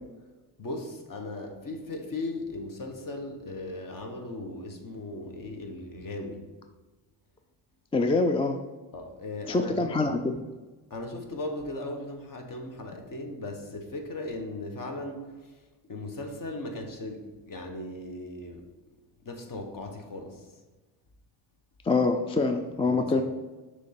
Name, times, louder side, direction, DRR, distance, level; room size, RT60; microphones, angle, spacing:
voice 1, 0.6-6.4 8.9-9.9 10.9-15.5 15.9-18.7 19.2-20.5 22.8-23.1, left 2 dB, 45° left, 4 dB, 1.2 m, -37 dB
voice 2, 7.9-8.6 9.5-10.4 21.9-23.2, left 3 dB, 15° left, 6 dB, 0.3 m, -25 dB
6.3 x 3.3 x 5.8 m, 1.2 s
cardioid pair, 85°, 44 cm